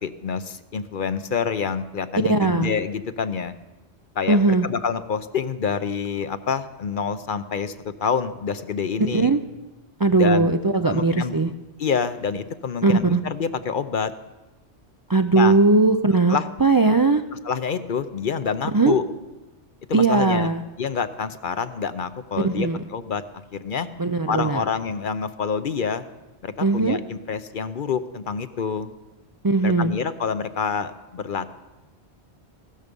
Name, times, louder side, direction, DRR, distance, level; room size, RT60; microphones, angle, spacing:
voice 1, 0.0-3.5 4.2-9.3 10.1-10.5 10.9-11.4 11.8-14.1 15.3-15.6 16.3-16.5 17.4-19.0 19.9-20.5 20.8-23.2 23.5-23.9 24.3-26.0 26.4-28.9 29.6-31.5, left 6 dB, 55° left, 12 dB, 0.8 m, -27 dB
voice 2, 2.3-2.7 4.3-4.7 9.1-9.4 10.0-11.5 12.8-13.2 15.1-17.2 18.7-18.9 19.9-20.6 22.4-22.8 24.0-24.6 26.6-27.0 29.4-29.9, right 3 dB, 35° right, 8 dB, 0.3 m, -19 dB
16.5 x 13.0 x 5.3 m, 1.1 s
omnidirectional pair, 1.2 m